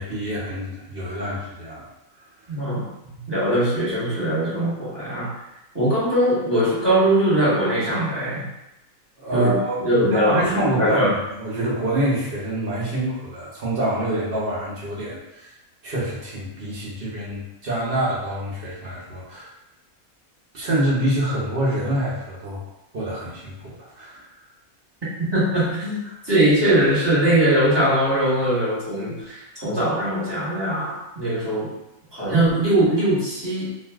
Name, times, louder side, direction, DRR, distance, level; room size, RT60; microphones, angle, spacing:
voice 1, 0.0-1.8 9.2-15.5 15.8-19.5 20.5-22.6 22.9-24.2, right 1 dB, 50° right, -6 dB, 0.8 m, -26 dB
voice 2, 2.5-2.8 3.1-5.3 5.7-8.5 9.3-11.2 25.2-31.7 32.1-33.7, right 1 dB, 20° right, -9 dB, 1.0 m, -21 dB
2.6 x 2.4 x 3.4 m, 0.93 s
omnidirectional pair, 1.5 m